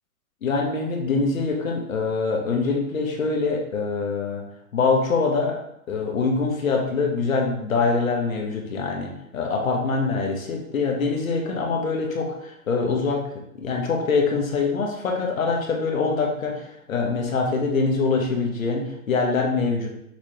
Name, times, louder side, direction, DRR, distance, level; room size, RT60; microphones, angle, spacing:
voice 1, 0.4-4.4 4.7-5.6 5.9-13.2 13.6-19.9, left 4 dB, 65° left, 1 dB, 1.1 m, -24 dB
5.9 x 3.2 x 2.8 m, 0.78 s
hypercardioid pair, 170°, 44 cm